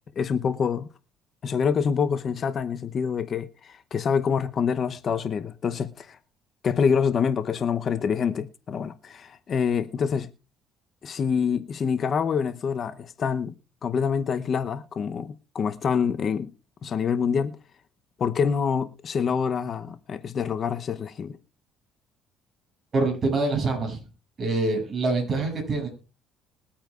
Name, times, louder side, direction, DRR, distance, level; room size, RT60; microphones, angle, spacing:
voice 1, 0.2-0.9 1.4-6.2 6.6-10.3 11.0-13.5 13.8-16.5 16.8-17.6 18.2-21.4, left 6 dB, 45° left, 0.8 m, -26 dB
voice 2, 22.9-24.0 24.4-25.9, right 3 dB, 35° right, 7.4 m, -25 dB
22.0 x 8.6 x 2.5 m
cardioid pair, 90°, 0 cm